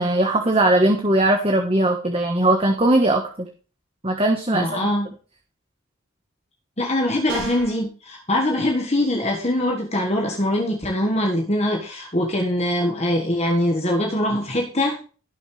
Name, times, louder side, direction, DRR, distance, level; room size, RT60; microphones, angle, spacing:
voice 1, 0.0-3.5 4.0-4.8, right 1 dB, 25° right, 3 dB, 1.3 m, -19 dB
voice 2, 4.5-5.1 6.8-15.0, left 1 dB, 30° left, 1 dB, 1.5 m, -23 dB
sound 1, 7.3-7.8, right 3 dB, 60° right, 3.7 m, -30 dB
18.5 x 6.4 x 3.3 m, 0.37 s
head